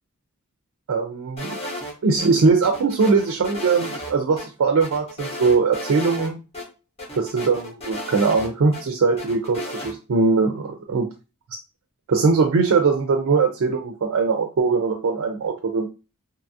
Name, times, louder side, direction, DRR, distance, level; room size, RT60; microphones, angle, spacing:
voice 1, 0.9-1.6 2.0-6.4 7.1-11.1 12.1-15.9, right 4 dB, 65° right, 4 dB, 0.4 m, -21 dB
sound 1, 1.4-2.3 2.6-4.1 4.4-4.5 4.8-6.3 6.5-6.6 7.0-8.8 9.2-9.9, left 1 dB, 30° left, 0.8 m, -34 dB
2.7 x 2.3 x 2.6 m, 0.30 s
head